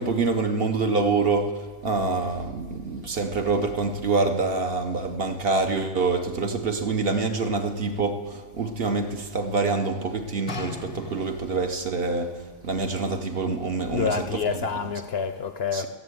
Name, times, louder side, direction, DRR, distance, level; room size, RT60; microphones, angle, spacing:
voice 1, 0.0-1.5 1.8-12.3 12.6-14.2 15.7-15.9, right 3 dB, 50° right, 0.9 m, -26 dB
sound 1, 10.5-11.7 12.5-12.6, left 4 dB, 30° left, 0.6 m, -37 dB
voice 2, 13.8-15.9, left 6 dB, 60° left, 0.8 m, -28 dB
14.0 x 7.4 x 7.8 m
omnidirectional pair, 1.4 m